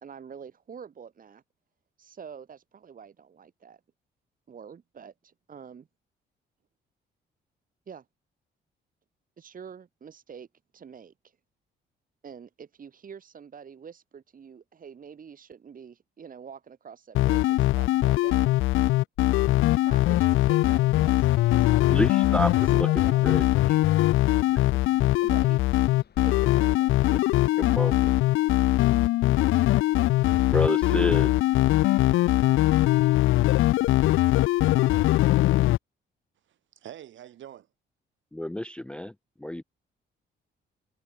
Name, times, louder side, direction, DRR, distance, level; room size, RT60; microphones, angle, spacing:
voice 1, 0.0-1.4 2.0-3.8 4.5-5.9 7.9-8.1 9.4-10.5 10.7-11.4 12.2-18.6 19.8-23.3 25.2-25.8 26.2-26.9 27.2-27.3, right 7 dB, 45° right, 2.3 m, -46 dB
sound 1, 17.1-35.8, left 16 dB, 85° left, 0.8 m, -21 dB
sound 2, 20.4-26.8, left 8 dB, 55° left, 5.8 m, -54 dB
voice 2, 21.9-22.9 23.2-23.8 24.5-24.6 27.1-27.2 27.6-28.1 30.5-31.3 38.3-39.1 39.4-39.6, left 1 dB, 5° left, 0.4 m, -29 dB
voice 3, 36.5-37.7, right 11 dB, 70° right, 7.3 m, -45 dB
cardioid pair, 90°, 20 cm